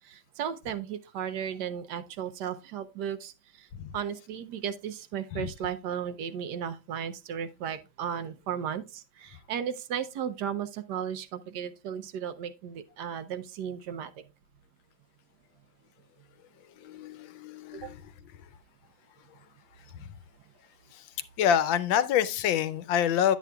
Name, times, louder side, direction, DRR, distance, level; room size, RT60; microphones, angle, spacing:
voice 1, 0.0-3.7 3.9-14.1 17.7-17.9, right 8 dB, 70° right, 1.0 m, -35 dB
voice 2, 16.8-17.9 21.4-23.4, left 9 dB, 75° left, 1.3 m, -26 dB
10.5 x 8.3 x 2.3 m
omnidirectional pair, 2.2 m